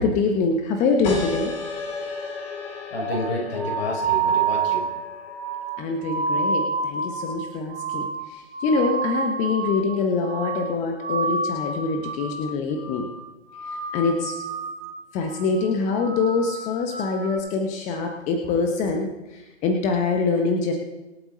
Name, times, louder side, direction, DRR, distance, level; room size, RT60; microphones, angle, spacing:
voice 1, 0.0-1.5 5.8-13.1 13.9-14.3 15.1-20.7, left 4 dB, 20° left, 3 dB, 1.4 m, -24 dB
sound 1, 1.0-6.2, left 4 dB, 35° left, 3.7 m, -33 dB
voice 2, 2.9-4.9, left 2 dB, 60° left, 0 dB, 5.9 m, -29 dB
sound 2, 3.0-10.0 10.2-10.7 11.0-12.5 12.8-13.2 13.5-15.0 15.3-15.7 16.0-17.4, right 4 dB, 80° right, 4.8 m, -28 dB
25.0 x 8.7 x 4.1 m, 1.1 s
figure-of-eight pair, 125°, 35 cm